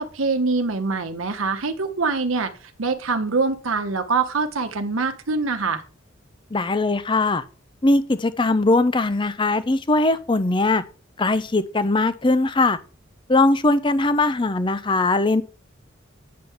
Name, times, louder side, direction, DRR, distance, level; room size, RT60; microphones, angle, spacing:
voice 1, 0.0-2.5 2.8-5.8, right 4 dB, 90° right, 1.1 m, -24 dB
voice 2, 6.5-7.4 7.8-10.8 11.2-12.8 13.3-15.4, left 2 dB, 25° left, 0.6 m, -20 dB
9.5 x 3.7 x 7.1 m
head